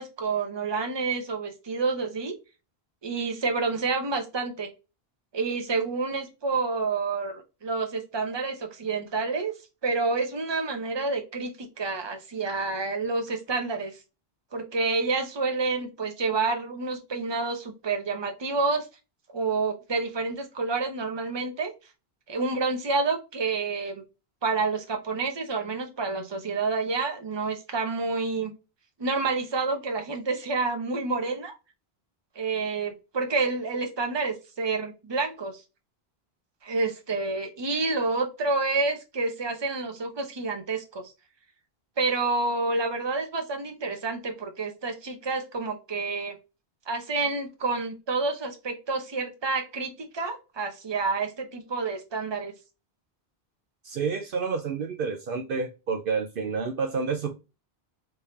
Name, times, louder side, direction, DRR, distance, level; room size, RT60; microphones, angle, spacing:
voice 1, 0.0-2.3 3.0-4.7 5.3-9.5 9.8-14.0 14.5-18.9 19.3-21.7 22.3-24.0 24.4-28.5 29.0-31.5 32.3-35.6 36.6-41.1 42.0-46.4 46.9-52.5, right 3 dB, 30° right, 0.8 m, -29 dB
voice 2, 53.8-57.3, right 5 dB, 65° right, 0.8 m, -29 dB
3.5 x 3.3 x 2.7 m
omnidirectional pair, 1.0 m